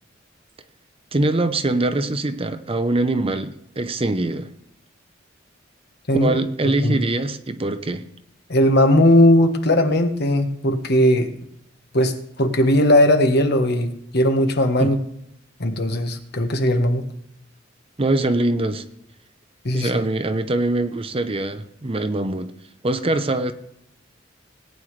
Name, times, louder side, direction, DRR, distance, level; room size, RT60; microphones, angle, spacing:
voice 1, 1.1-4.5 6.2-8.0 14.8-15.0 18.0-18.8 19.7-22.5 22.8-23.5, right 2 dB, 30° right, 0.7 m, -23 dB
voice 2, 8.5-11.3 11.9-15.0 15.6-17.1 19.6-19.9, left 1 dB, 60° left, 1.3 m, -18 dB
18.0 x 9.4 x 3.2 m
head